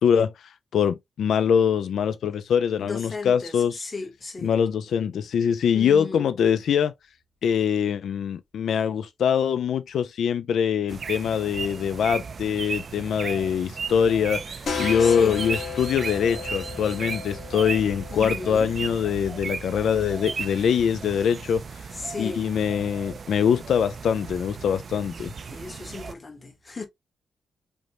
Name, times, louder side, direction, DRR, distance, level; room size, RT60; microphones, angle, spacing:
voice 1, 0.0-3.7 4.4-6.9 7.4-21.8 22.2-25.3, left 7 dB, 85° left, 0.3 m, -23 dB
voice 2, 2.8-4.6 5.7-6.3 15.0-15.5 18.1-18.7 21.9-22.4 25.5-26.9, left 3 dB, 25° left, 1.0 m, -35 dB
sound 1, 10.9-26.1, right 5 dB, 45° right, 0.3 m, -35 dB
sound 2, 14.7-20.1, left 5 dB, 60° left, 1.3 m, -35 dB
5.1 x 2.1 x 2.8 m
wide cardioid pair, 145°, 0 cm